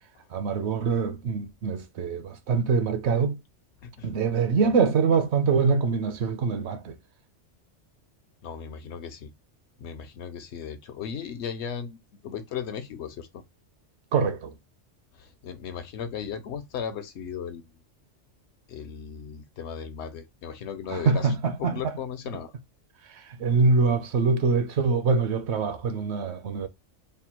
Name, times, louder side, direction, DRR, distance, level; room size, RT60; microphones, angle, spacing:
voice 1, 0.3-3.4 4.0-7.0 14.1-14.5 20.9-21.9 23.0-26.7, right 5 dB, 70° right, 0.8 m, -24 dB
voice 2, 8.4-9.3 9.8-12.0 12.2-13.4 15.2-17.7 18.7-21.3 21.6-22.5, left 7 dB, 70° left, 0.9 m, -36 dB
3.4 x 2.1 x 4.3 m
omnidirectional pair, 1.2 m